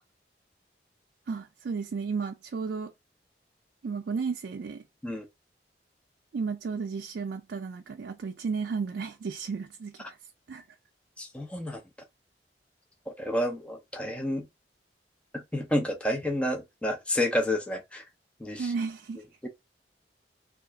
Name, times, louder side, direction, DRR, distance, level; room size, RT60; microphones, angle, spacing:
voice 1, 1.3-2.9 3.8-4.8 6.3-10.2 10.5-10.6 18.6-19.2, right 5 dB, 70° right, 0.4 m, -33 dB
voice 2, 11.2-11.8 13.1-14.5 15.3-18.0 18.4-18.7 19.4-19.5, left 1 dB, 5° left, 0.4 m, -30 dB
2.9 x 2.3 x 3.3 m
head